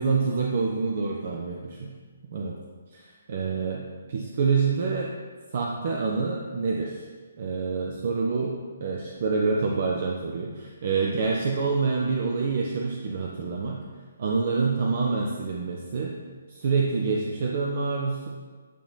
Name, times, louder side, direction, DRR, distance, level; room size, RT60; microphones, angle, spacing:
voice 1, 0.0-1.9 2.3-2.6 2.9-5.1 5.5-7.1 7.4-13.8 14.2-16.2 16.5-18.3, right 4 dB, 45° right, 0 dB, 0.5 m, -27 dB
8.0 x 2.9 x 4.0 m, 1.5 s
figure-of-eight pair, 135°, 0 cm